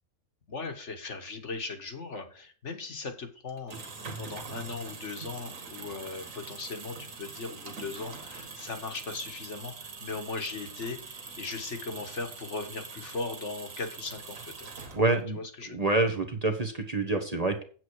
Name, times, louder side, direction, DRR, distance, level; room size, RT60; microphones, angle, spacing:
voice 1, 0.5-3.7 4.2-14.7 15.3-15.8, left 3 dB, 55° left, 6 dB, 1.8 m, -38 dB
sound 1, 3.5-15.3, right 4 dB, 65° right, 2.0 m, -43 dB
voice 2, 14.9-15.4 15.7-17.6, right 2 dB, 30° right, 5 dB, 1.1 m, -27 dB
8.3 x 7.8 x 4.8 m, 0.41 s
omnidirectional pair, 1.5 m